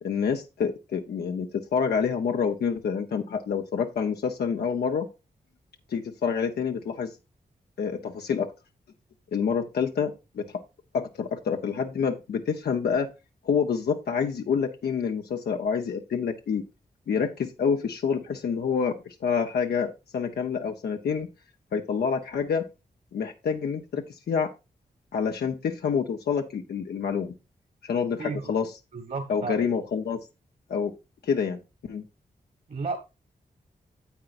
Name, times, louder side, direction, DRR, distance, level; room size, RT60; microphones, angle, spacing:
voice 1, 0.0-5.1 5.9-7.1 7.8-8.5 9.3-10.5 10.9-13.1 13.4-16.6 17.1-21.3 21.7-22.6 23.1-24.5 25.1-27.3 27.8-28.7 29.3-30.2 30.7-30.9 31.2-32.0, left 6 dB, 90° left, 0.8 m, -27 dB
voice 2, 28.2-28.5 28.9-29.5 32.7-33.0, right 4 dB, 55° right, 1.6 m, -32 dB
10.0 x 7.8 x 2.6 m
cardioid pair, 65°, 16 cm